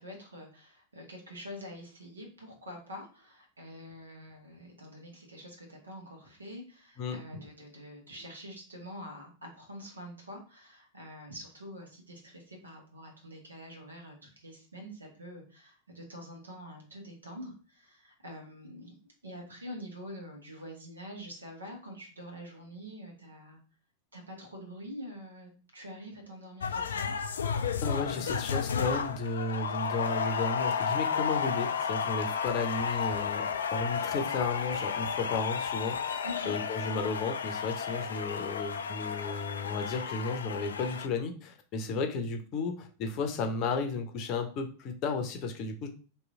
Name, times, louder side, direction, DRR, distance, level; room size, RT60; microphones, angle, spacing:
voice 1, 0.0-23.6 24.1-27.1 36.2-36.5, equal, 75° right, 1 dB, 1.2 m, -46 dB
sound 1, 26.6-41.1, left 6 dB, 65° left, 0.3 m, -32 dB
voice 2, 27.8-45.9, left 4 dB, 40° left, 5 dB, 0.7 m, -33 dB
3.0 x 2.7 x 3.6 m, 0.39 s
figure-of-eight pair, 90°, 0 cm